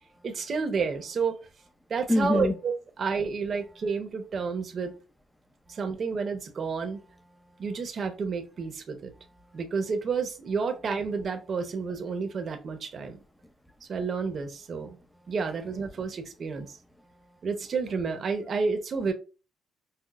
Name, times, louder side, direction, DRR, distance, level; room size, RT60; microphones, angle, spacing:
voice 1, 0.2-1.4 1.9-2.7 3.0-4.9 5.7-7.0 7.6-9.1 9.5-13.2 13.8-15.0 15.3-16.8 17.4-19.1, right 5 dB, 50° right, 0.9 m, -30 dB
voice 2, 2.1-2.6 5.7-5.8 7.3-7.6 9.1-9.6 13.4-13.5 15.1-15.3 17.0-17.4 18.5-18.6, left 2 dB, 5° left, 0.5 m, -31 dB
5.7 x 2.0 x 2.5 m
cardioid pair, 90°, 0 cm